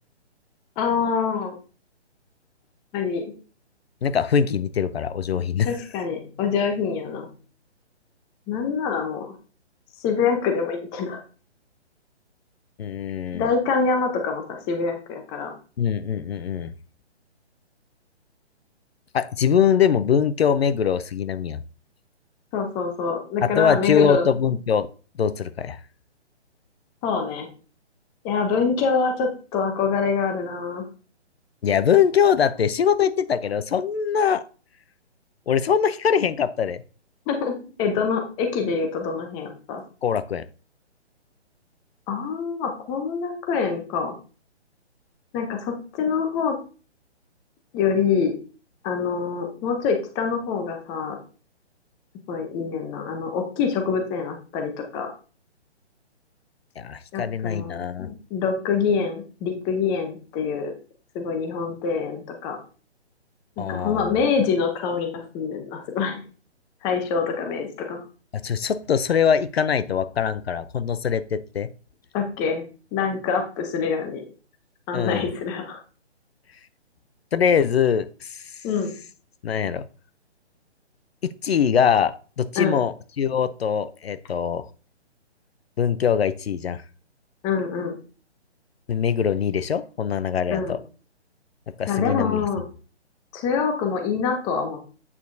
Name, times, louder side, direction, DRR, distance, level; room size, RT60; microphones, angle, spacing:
voice 1, 0.8-1.5 2.9-3.3 5.6-7.3 8.5-9.3 10.0-11.2 13.3-15.5 22.5-24.3 27.0-27.5 28.2-30.9 37.3-39.8 42.1-44.2 45.3-46.5 47.7-48.3 48.8-51.2 52.3-55.1 57.1-60.7 61.1-62.6 63.6-66.2 66.8-68.0 72.1-72.6 72.9-74.2 74.9-75.8 78.6-78.9 82.6-82.8 87.4-88.0 90.5-90.8 91.9-92.6 93.3-94.8, left 5 dB, 10° left, 4 dB, 0.7 m, -25 dB
voice 2, 4.0-5.7 12.8-13.5 15.8-16.7 19.1-21.6 23.4-24.9 25.2-25.8 31.6-34.4 35.5-36.8 40.0-40.4 56.8-58.1 63.6-64.1 68.4-71.7 74.9-75.3 77.3-78.6 79.4-79.8 81.4-84.6 85.8-86.8 88.9-90.8 91.8-92.4, left 7 dB, 60° left, 14 dB, 0.6 m, -22 dB
8.4 x 6.9 x 2.7 m, 0.36 s
hypercardioid pair, 150°, 34 cm